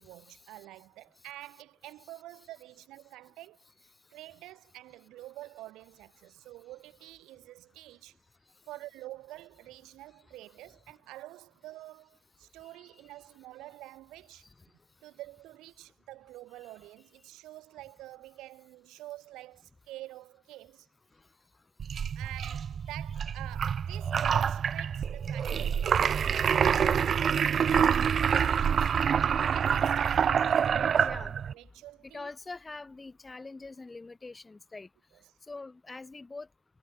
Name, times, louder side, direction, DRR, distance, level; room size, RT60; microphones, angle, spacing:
voice 1, 0.0-3.6 4.1-8.2 8.7-14.5 15.0-20.9 22.1-29.1 29.5-31.2 31.5-32.3, right 16 dB, 70° right, 1.4 m, -48 dB
sound 1, 21.8-31.5, right 7 dB, 50° right, 0.5 m, -26 dB
voice 2, 31.0-31.4 32.0-34.9 35.5-36.5, left 3 dB, 25° left, 4.8 m, -43 dB
hypercardioid pair, 60°, 0 cm